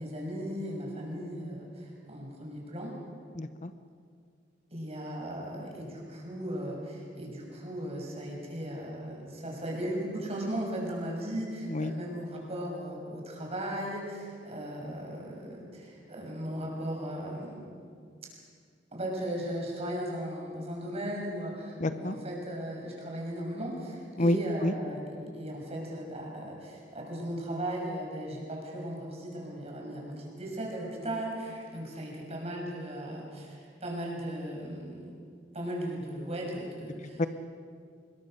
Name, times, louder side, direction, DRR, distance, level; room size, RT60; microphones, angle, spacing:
voice 1, 0.0-2.9 4.7-17.6 18.9-35.1 35.5-37.2, right 1 dB, 35° right, -1 dB, 6.5 m, -37 dB
voice 2, 3.4-3.7 11.7-11.9 21.8-22.2 24.2-24.7 37.2-37.3, left 1 dB, 40° left, 10 dB, 0.8 m, -28 dB
25.5 x 21.5 x 6.6 m, 2.2 s
head